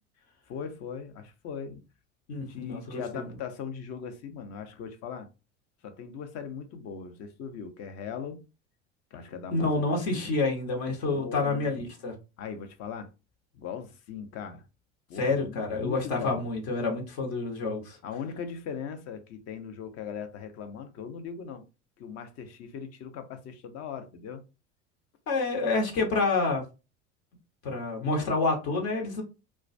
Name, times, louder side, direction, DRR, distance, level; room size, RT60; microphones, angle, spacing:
voice 1, 0.5-1.8 2.4-5.3 5.8-8.4 9.1-9.8 10.1-10.4 11.0-11.8 12.4-13.1 13.5-14.6 15.1-16.5 18.0-21.6 22.0-24.4, left 7 dB, 40° left, 0.6 m, -39 dB
voice 2, 2.3-3.2 9.5-12.1 15.1-18.0 25.3-26.6 27.6-29.2, left 3 dB, 60° left, 1.0 m, -28 dB
2.2 x 2.2 x 2.5 m
hypercardioid pair, 85°, 38 cm